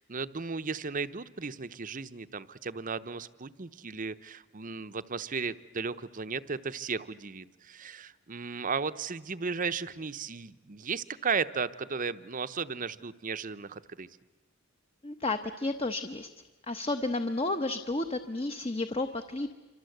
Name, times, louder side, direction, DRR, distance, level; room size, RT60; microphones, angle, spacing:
voice 1, 0.0-14.1, right 5 dB, 40° right, 14 dB, 0.8 m, -35 dB
voice 2, 15.0-16.3 16.7-19.5, left 2 dB, 25° left, 8 dB, 0.9 m, -32 dB
27.5 x 25.5 x 7.9 m, 1.2 s
head